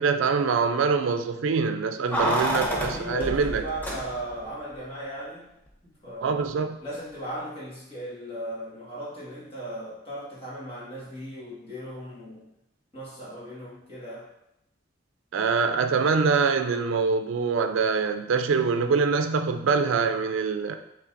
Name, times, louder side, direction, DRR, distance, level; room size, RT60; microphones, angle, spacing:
voice 1, 0.0-3.6 6.2-6.8 15.3-20.8, right 5 dB, 90° right, 8 dB, 0.4 m, -24 dB
voice 2, 2.0-5.5 6.0-6.4 6.8-12.5 12.9-14.3, right 1 dB, 30° left, -7 dB, 1.6 m, -37 dB
Keys jangling, 2.1-4.5 4.7-4.8, equal, 10° left, 0.7 m, -29 dB
5.8 x 3.4 x 2.6 m, 0.83 s
head